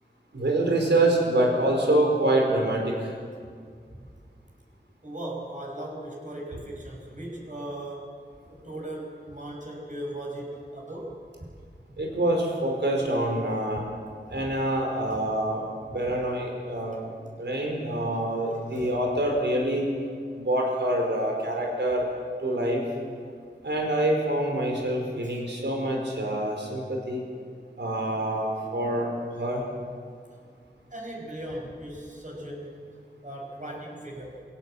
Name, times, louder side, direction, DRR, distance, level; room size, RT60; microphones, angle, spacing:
voice 1, 0.3-3.1 12.0-13.8 14.3-15.6 15.9-17.1 17.4-19.9 20.3-22.1 22.4-22.8 23.6-27.2 27.8-29.1 29.4-29.7, right 1 dB, 75° right, 0 dB, 4.9 m, -26 dB
voice 2, 5.0-8.2 8.5-11.5 14.3-14.5 15.1-15.2 15.9-16.0 18.7-18.9 25.2-25.4 30.9-32.8 33.2-34.4, right 1 dB, 45° right, -1 dB, 6.3 m, -38 dB
23.5 x 16.5 x 7.9 m, 2.1 s
wide cardioid pair, 50°, 18 cm